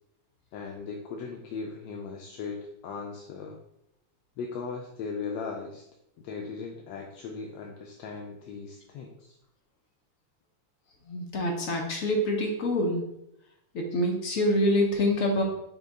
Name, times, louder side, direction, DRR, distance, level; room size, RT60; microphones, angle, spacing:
voice 1, 0.5-3.6 4.4-5.8 6.2-9.3, left 5 dB, 80° left, 0 dB, 1.3 m, -38 dB
voice 2, 11.1-13.1 13.7-15.4, left 1 dB, 60° left, 1 dB, 0.9 m, -26 dB
6.1 x 2.2 x 3.9 m, 0.81 s
omnidirectional pair, 2.1 m